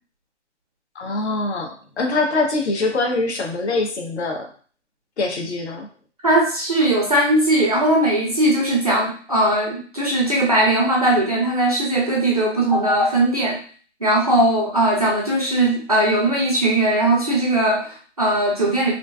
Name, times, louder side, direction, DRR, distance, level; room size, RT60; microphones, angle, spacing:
voice 1, 1.0-1.7 2.0-4.5 5.2-5.9, left 3 dB, 65° left, 2 dB, 0.7 m, -23 dB
voice 2, 6.2-13.6 14.0-18.9, right 1 dB, 35° right, -2 dB, 0.4 m, -19 dB
2.5 x 2.3 x 2.2 m, 0.42 s
hypercardioid pair, 150°, 36 cm